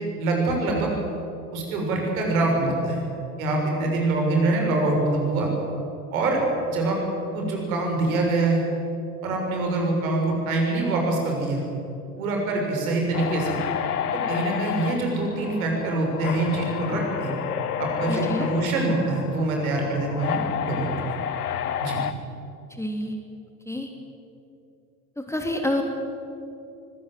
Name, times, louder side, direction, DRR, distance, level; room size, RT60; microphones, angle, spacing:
voice 1, 0.2-0.9 1.5-3.0 3.4-5.5 6.1-6.4 6.7-7.0 7.3-8.6 9.2-11.6 12.2-13.6 14.1-17.3 17.8-20.9 21.8-22.0, right 2 dB, 65° right, 1 dB, 6.7 m, -24 dB
sound 1, 13.1-22.1, left 9 dB, 75° left, 1.2 m, -30 dB
voice 2, 18.1-18.5 22.7-23.1 23.7-23.9 25.2-25.8, left 1 dB, 5° left, 3 dB, 2.7 m, -28 dB
24.5 x 21.0 x 7.9 m, 2.7 s
figure-of-eight pair, 70°, 46 cm